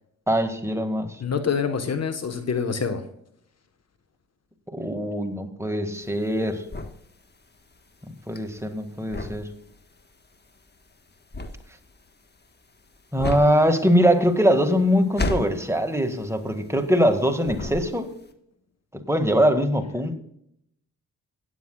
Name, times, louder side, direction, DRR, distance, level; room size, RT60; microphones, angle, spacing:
voice 1, 0.3-1.2 4.7-6.6 8.3-9.5 13.1-18.1 18.9-20.2, equal, 10° right, 5 dB, 1.9 m, -22 dB
voice 2, 1.2-3.0, left 6 dB, 50° left, 9 dB, 1.3 m, -26 dB
sound 1, 5.9-17.1 17.4-18.3, left 2 dB, 30° left, 1.5 m, -34 dB
17.0 x 9.5 x 2.4 m, 0.73 s
supercardioid pair, 60°, 33 cm